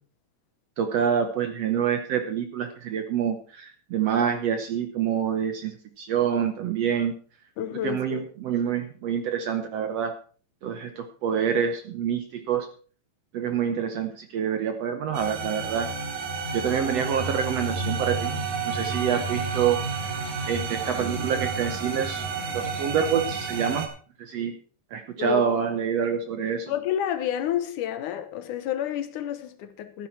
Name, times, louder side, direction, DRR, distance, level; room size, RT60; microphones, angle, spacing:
voice 1, 0.8-7.2 7.7-10.1 10.6-12.7 13.3-15.9 16.5-20.1 20.4-22.2 22.5-23.9 24.2-24.5 24.9-26.7, right 8 dB, 65° right, 1.6 m, -27 dB
voice 2, 7.6-8.2 25.2-25.4 26.7-30.1, left 10 dB, 75° left, 2.4 m, -29 dB
sound 1, 15.1-23.9, right 4 dB, 85° right, 3.6 m, -30 dB
13.5 x 10.0 x 4.5 m
omnidirectional pair, 3.8 m